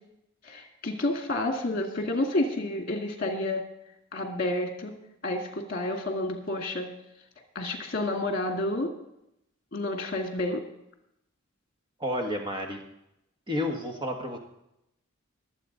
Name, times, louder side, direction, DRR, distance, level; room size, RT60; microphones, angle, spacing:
voice 1, 0.4-3.6 4.1-4.9 5.2-7.0 7.6-8.9 9.7-10.6, left 1 dB, 45° left, 3 dB, 1.9 m, -30 dB
voice 2, 12.0-12.8 13.5-14.4, left 1 dB, 20° right, 2 dB, 1.4 m, -30 dB
21.0 x 7.9 x 3.9 m, 0.82 s
head